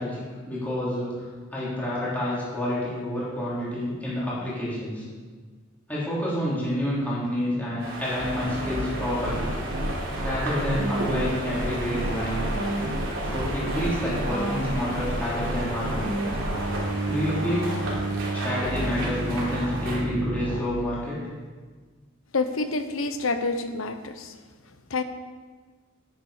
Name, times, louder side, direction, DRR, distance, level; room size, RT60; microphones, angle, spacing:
voice 1, 0.0-5.0 5.9-9.5 10.2-12.5 13.2-16.0 17.1-17.7 18.3-21.3, equal, 10° left, -8 dB, 3.4 m, -29 dB
sound 1, 7.8-20.0, right 1 dB, 70° right, 3.2 m, -34 dB
sound 2, 8.2-20.6, right 1 dB, 90° right, 1.2 m, -30 dB
voice 2, 22.3-24.3 24.9-25.0, left 3 dB, 80° left, 9 dB, 0.9 m, -27 dB
10.5 x 9.2 x 5.0 m, 1.4 s
head